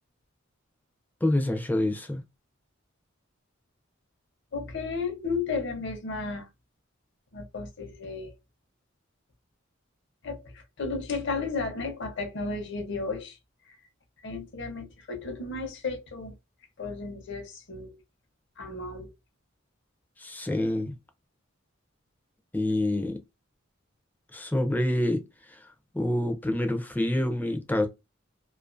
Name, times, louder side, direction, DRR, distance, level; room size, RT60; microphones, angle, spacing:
voice 1, 1.2-2.2 20.2-21.0 22.5-23.2 24.3-27.9, left 1 dB, 10° left, 0.4 m, -27 dB
voice 2, 4.5-6.5 7.3-8.3 10.2-13.4 13.6-13.8 14.2-16.4 16.8-18.0 18.6-19.1, left 4 dB, 60° left, 0.7 m, -34 dB
2.4 x 2.4 x 2.4 m
head